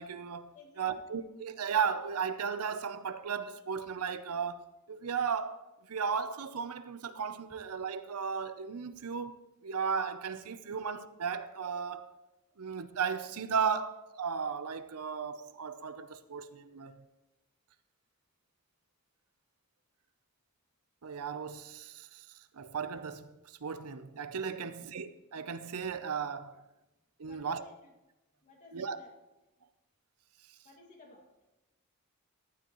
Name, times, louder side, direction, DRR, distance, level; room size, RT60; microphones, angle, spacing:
voice 1, 0.0-0.5 0.8-5.6 5.9-12.1 12.6-17.0 21.0-22.3 22.5-26.6 27.2-27.6 28.7-29.0, right 6 dB, 80° right, 0.6 m, -35 dB
voice 2, 0.5-1.1 24.6-24.9 27.3-27.9 28.4-29.1 30.6-31.3, left 2 dB, 35° left, 2.1 m, -56 dB
15.0 x 11.5 x 3.1 m
head